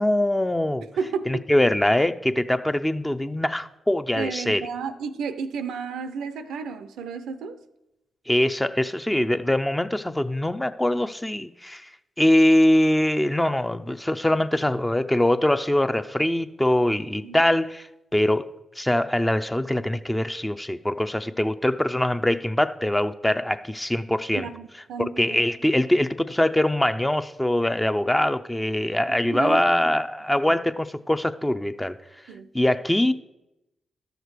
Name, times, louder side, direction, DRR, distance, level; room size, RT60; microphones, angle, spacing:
voice 1, 0.0-0.9 1.3-4.6 8.3-11.9 12.2-18.5 18.8-24.5 25.2-32.0 32.5-33.1, left 1 dB, 15° left, 10 dB, 0.6 m, -23 dB
voice 2, 1.0-1.5 4.1-7.6 17.2-17.4 24.3-25.5 29.3-29.6 32.3-32.5, right 5 dB, 80° right, 11 dB, 0.5 m, -32 dB
12.5 x 6.6 x 4.7 m, 0.92 s
hypercardioid pair, 40°, 0 cm